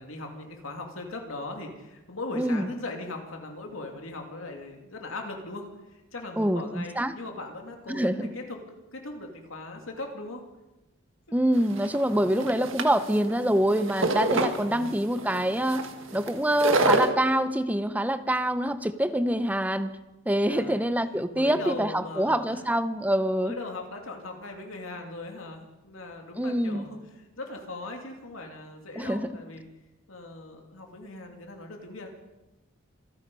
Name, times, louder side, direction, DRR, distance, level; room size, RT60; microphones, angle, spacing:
voice 1, 0.0-10.4 11.3-11.4 14.3-15.0 20.5-20.8 21.3-22.6 23.4-29.6 30.1-32.1, left 2 dB, 85° left, 2 dB, 2.6 m, -39 dB
voice 2, 2.4-2.7 6.4-7.1 7.9-8.3 11.3-19.9 20.3-23.5 26.4-26.8 29.0-29.3, right 1 dB, 5° right, 11 dB, 0.6 m, -25 dB
sound 1, 11.5-17.1, right 2 dB, 75° right, 1.6 m, -27 dB
26.5 x 9.9 x 5.4 m, 1.0 s
head